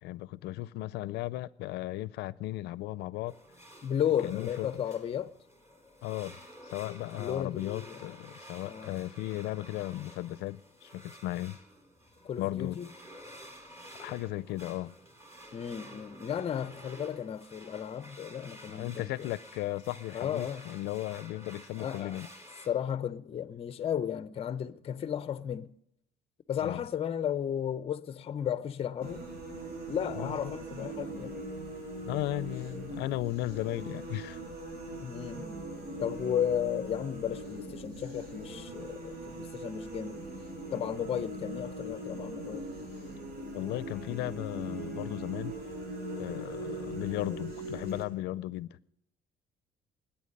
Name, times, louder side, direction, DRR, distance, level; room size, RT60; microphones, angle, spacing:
voice 1, 0.0-3.3 4.2-4.7 6.0-6.4 6.6-11.6 12.4-12.8 14.0-14.9 18.7-22.3 26.6-26.8 30.1-30.5 32.0-34.4 43.5-45.5 46.2-48.9, left 16 dB, 80° left, 0.5 m, -36 dB
sound 1, 3.3-22.7, equal, 15° right, 3.6 m, -51 dB
voice 2, 3.8-5.3 7.1-8.0 8.7-9.0 12.2-12.9 15.5-19.3 20.1-20.7 21.8-22.2 22.7-25.7 26.5-29.2 29.9-31.3 35.0-35.5 36.0-40.2 40.7-42.7, left 9 dB, 35° left, 0.6 m, -34 dB
sound 2, 29.0-48.0, right 1 dB, 65° right, 6.7 m, -40 dB
21.0 x 8.9 x 5.3 m
cardioid pair, 110°, 17 cm